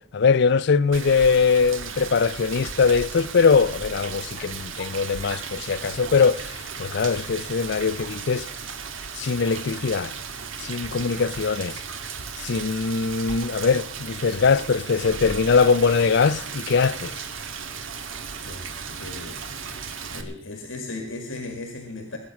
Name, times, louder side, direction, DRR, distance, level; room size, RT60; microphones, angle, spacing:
voice 1, 0.1-6.5 6.8-8.5 9.2-10.1 10.6-11.8 12.4-17.1, left 5 dB, 60° left, 0.5 m, -21 dB
Rain, 0.9-20.2, right 6 dB, 90° right, 1.7 m, -35 dB
voice 2, 19.0-19.4 20.1-22.2, left 2 dB, 85° left, 1.9 m, -36 dB
20.0 x 8.5 x 5.9 m
head